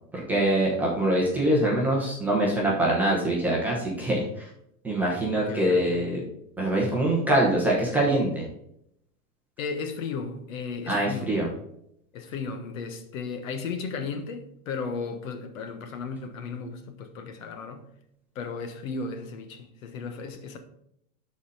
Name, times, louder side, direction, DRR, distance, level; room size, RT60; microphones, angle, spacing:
voice 1, 0.3-4.2 4.8-6.2 6.6-8.4 10.9-11.5, right 1 dB, 5° right, 0.9 m, -24 dB
voice 2, 5.3-6.1 9.6-11.4 12.1-17.8 18.3-20.6, left 4 dB, 60° left, 1.2 m, -35 dB
11.5 x 4.2 x 4.1 m
supercardioid pair, 175°, 45 cm